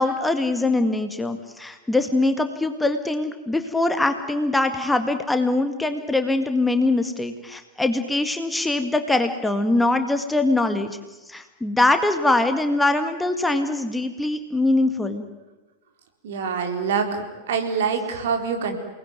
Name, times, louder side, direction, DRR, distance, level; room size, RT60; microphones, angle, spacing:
voice 1, 0.0-11.0 11.3-15.3, left 2 dB, 5° left, 7 dB, 1.9 m, -22 dB
voice 2, 16.2-18.7, right 6 dB, 60° right, 5 dB, 4.1 m, -25 dB
29.5 x 20.0 x 9.5 m, 1.1 s
figure-of-eight pair, 90°, 0 cm